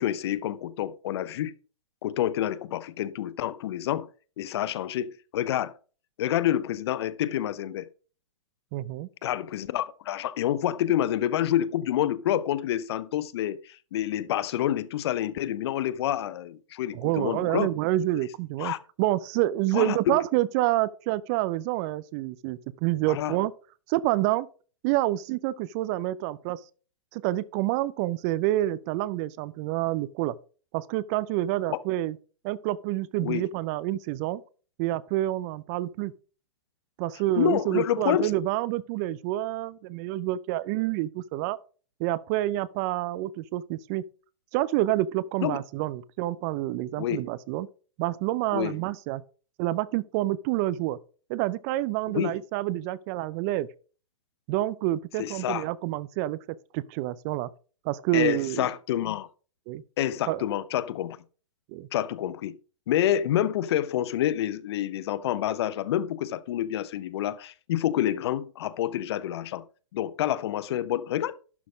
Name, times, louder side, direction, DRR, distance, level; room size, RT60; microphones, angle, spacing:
voice 1, 0.0-1.5 2.0-4.1 4.4-5.7 6.2-7.9 9.2-17.7 18.6-18.8 19.7-20.2 23.1-23.3 33.2-33.4 37.4-38.3 45.4-45.6 47.0-47.2 48.5-48.7 52.1-52.3 55.2-55.7 58.1-59.3 60.0-61.2 61.9-62.6 62.9-69.6 69.9-71.3, left 12 dB, 50° left, 0.7 m, -28 dB
voice 2, 8.7-9.1 16.9-23.5 23.9-24.5 24.8-26.6 27.1-30.4 30.7-32.2 32.4-34.4 34.8-36.1 37.0-41.6 42.0-44.0 44.5-47.7 48.0-49.2 49.6-51.0 51.3-53.7 54.5-56.4 56.7-57.5 57.8-58.7 59.7-59.8 60.3-60.4 61.7-61.9, right 15 dB, 30° right, 0.4 m, -28 dB
12.0 x 4.2 x 5.0 m
hypercardioid pair, 125°, 17 cm